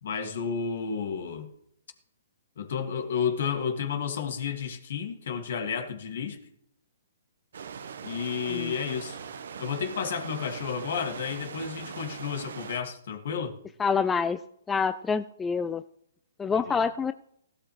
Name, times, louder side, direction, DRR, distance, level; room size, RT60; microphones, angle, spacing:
voice 1, 0.0-1.5 2.6-6.4 8.0-9.2 9.6-13.6 16.5-16.9, left 6 dB, 60° left, 5 dB, 2.2 m, -31 dB
sound 1, 7.5-12.8, right 6 dB, 65° right, 1.1 m, -41 dB
voice 2, 13.8-14.4 14.7-15.8 16.4-17.1, left 5 dB, 10° left, 11 dB, 0.4 m, -26 dB
16.5 x 12.0 x 3.3 m, 0.75 s
hypercardioid pair, 135°, 0 cm